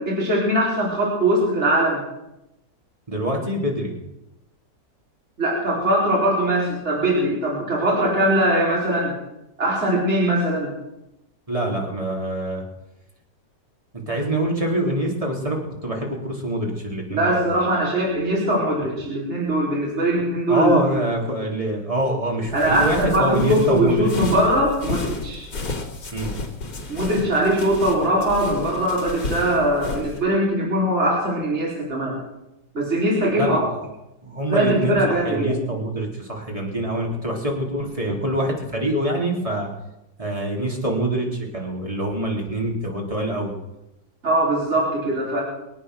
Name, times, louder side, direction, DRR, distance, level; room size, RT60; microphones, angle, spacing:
voice 1, 0.0-2.0 5.4-9.1 9.6-10.7 17.1-20.8 22.5-25.4 26.9-32.2 32.7-33.6 34.5-35.6 44.2-45.4, right 1 dB, 40° right, -4 dB, 4.4 m, -21 dB
voice 2, 3.1-3.9 11.5-12.6 14.1-17.5 20.5-24.1 26.1-26.3 33.3-33.8 34.2-39.7 40.2-43.5, right 1 dB, 20° right, -1 dB, 3.7 m, -25 dB
sound 1, 22.4-30.2, left 3 dB, 75° left, 3.5 m, -32 dB
24.5 x 8.9 x 6.4 m, 0.92 s
omnidirectional pair, 1.9 m